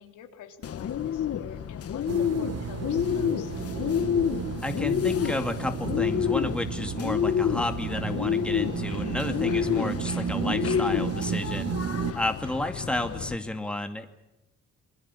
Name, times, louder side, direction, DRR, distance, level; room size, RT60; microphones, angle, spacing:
voice 1, 0.0-3.5, left 8 dB, 85° left, 4 dB, 3.3 m, -46 dB
Bird, 0.6-13.4, left 9 dB, 50° left, 1.2 m, -29 dB
sound 1, 2.1-12.1, right 8 dB, 55° right, 1.2 m, -33 dB
voice 2, 4.6-11.7 12.1-14.1, left 1 dB, 5° left, 5 dB, 2.4 m, -32 dB
27.0 x 21.0 x 8.5 m, 0.96 s
cardioid pair, 90°, 30 cm